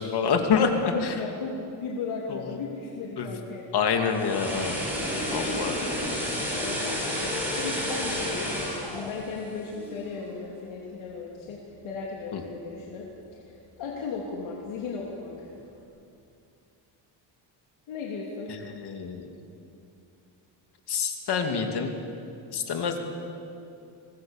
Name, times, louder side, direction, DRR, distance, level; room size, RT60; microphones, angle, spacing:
voice 1, 0.0-1.1 2.5-2.6 3.2-3.3 3.7-4.8 5.3-5.8 12.3-12.4 18.8-19.3 20.9-21.9 22.5-23.0, left 6 dB, 55° left, 4 dB, 2.6 m, -26 dB
voice 2, 0.9-3.9 5.5-6.0 6.5-7.1 7.5-15.5 17.9-18.5, left 4 dB, 80° left, -2 dB, 3.2 m, -36 dB
sound 1, 3.9-10.1 10.4-10.6, left 1 dB, 5° right, 6.1 m, -31 dB
24.5 x 19.5 x 7.2 m, 2.6 s
cardioid pair, 145°, 47 cm